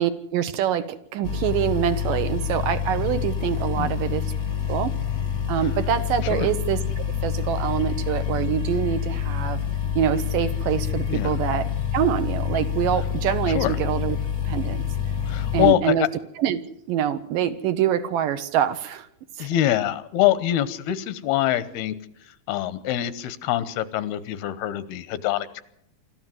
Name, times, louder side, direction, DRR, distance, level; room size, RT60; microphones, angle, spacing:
voice 1, 0.0-4.3 4.7-4.9 5.5-9.6 10.0-14.2 14.5-14.8 15.5-16.1 16.4-16.6 16.9-19.1 19.4-19.5, right 10 dB, 70° right, 10 dB, 2.3 m, -25 dB
sound 1, 1.2-15.7, left 8 dB, 45° left, 1.1 m, -27 dB
voice 2, 15.3-16.1 19.4-22.0 22.5-25.6, left 13 dB, 85° left, 15 dB, 2.9 m, -24 dB
25.5 x 14.0 x 7.8 m, 0.73 s
omnidirectional pair, 4.4 m